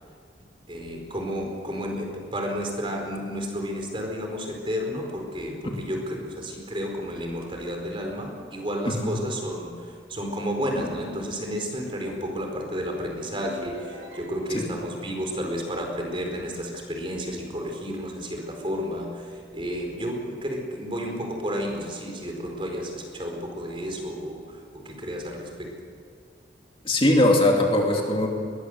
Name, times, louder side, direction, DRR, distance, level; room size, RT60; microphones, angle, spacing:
voice 1, 0.7-25.8, equal, 30° right, 2 dB, 4.6 m, -32 dB
sound 1, 13.4-14.8, equal, 70° right, 4.4 m, -43 dB
voice 2, 26.8-28.3, left 1 dB, 30° left, 0 dB, 2.8 m, -20 dB
22.0 x 20.0 x 7.9 m, 2.3 s
head